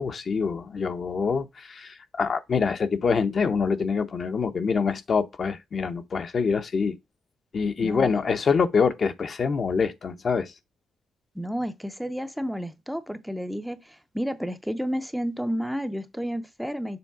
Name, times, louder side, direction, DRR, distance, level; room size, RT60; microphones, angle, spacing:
voice 1, 0.0-7.0 7.5-10.5, left 5 dB, 40° left, 0.7 m, -25 dB
voice 2, 11.4-17.0, equal, ahead, 0.5 m, -31 dB
7.0 x 3.5 x 4.7 m
wide cardioid pair, 160°, 0 cm